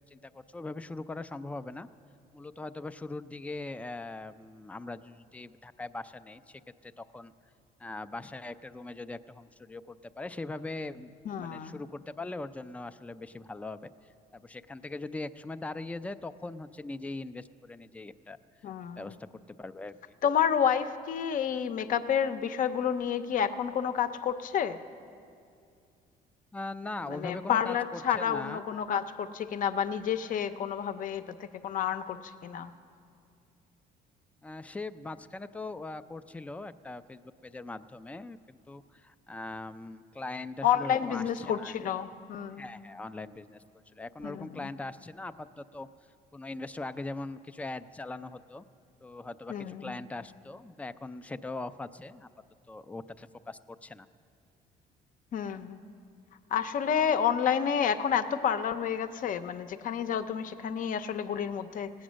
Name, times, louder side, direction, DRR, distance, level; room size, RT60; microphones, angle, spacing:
voice 1, 0.1-1.9 2.3-7.3 7.8-11.1 11.4-13.9 14.3-18.4 19.0-20.2 26.5-28.7 34.4-41.7 42.6-43.6 43.9-45.9 46.3-48.6 49.0-52.3 52.7-54.1, left 2 dB, 10° left, 12 dB, 0.4 m, -41 dB
voice 2, 11.3-11.8 18.6-19.1 20.2-24.8 27.1-32.7 40.6-42.7 44.2-44.7 49.5-50.0 55.3-55.8 56.5-61.9, left 8 dB, 55° left, 10 dB, 0.7 m, -30 dB
17.5 x 8.8 x 6.3 m, 2.4 s
cardioid pair, 110°, 17 cm